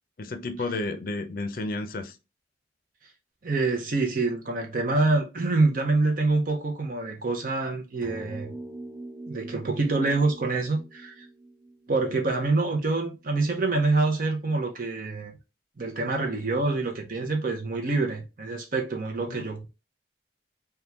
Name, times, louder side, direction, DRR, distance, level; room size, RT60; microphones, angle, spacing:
voice 1, 0.2-2.2 19.3-19.5, left 2 dB, 55° left, 0.5 m, -32 dB
voice 2, 3.4-8.5 9.3-11.2 11.9-15.3 15.8-19.7, right 3 dB, 50° right, 0.7 m, -26 dB
sound 1, 8.0-12.5, right 1 dB, 15° right, 1.0 m, -43 dB
3.5 x 2.3 x 2.8 m
head